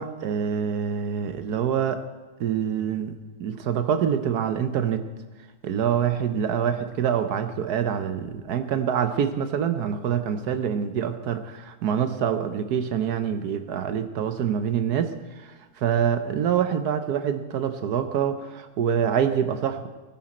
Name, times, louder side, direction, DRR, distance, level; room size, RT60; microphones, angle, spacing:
voice 1, 0.0-2.0 2.4-3.1 3.4-5.0 5.6-19.9, right 8 dB, 65° right, 9 dB, 1.3 m, -26 dB
17.0 x 10.0 x 4.3 m, 1.3 s
omnidirectional pair, 1.9 m